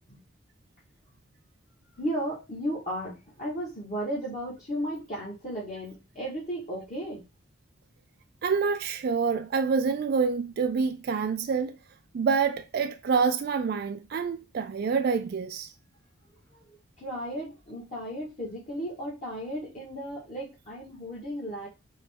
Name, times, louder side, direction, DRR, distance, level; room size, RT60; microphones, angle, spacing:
voice 1, 2.0-7.2 17.0-21.7, equal, 40° left, 1.3 m, -34 dB
voice 2, 8.4-11.7 12.1-15.7, right 5 dB, 50° right, 0.3 m, -27 dB
3.9 x 3.1 x 3.4 m
head